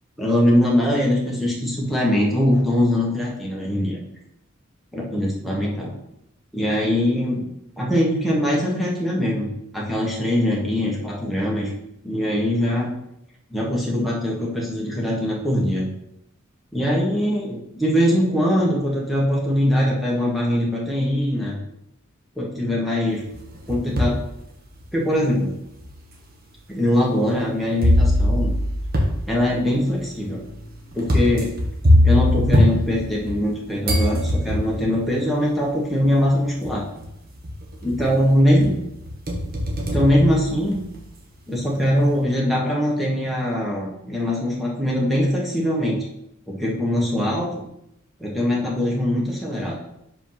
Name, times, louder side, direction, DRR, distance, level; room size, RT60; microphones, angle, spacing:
voice 1, 0.2-4.0 4.9-5.9 6.5-7.4 7.8-11.7 12.0-12.9 13.5-15.9 16.7-21.6 22.4-23.2 23.7-24.2 24.9-25.5 26.7-28.5 29.3-30.4 30.9-31.5 32.0-36.9 37.8-38.7 39.9-40.8 41.5-46.0 46.5-47.5 48.2-49.7, left 1 dB, ahead, -4 dB, 1.3 m, -22 dB
sound 1, 23.3-24.2 24.8-24.9 25.8-25.9 27.8-33.5 33.8-34.9 36.0-36.1 36.6-37.1 37.4-38.2 38.6-41.0, left 1 dB, 45° right, 1.4 m, -21 dB
5.1 x 4.5 x 5.7 m, 0.80 s
head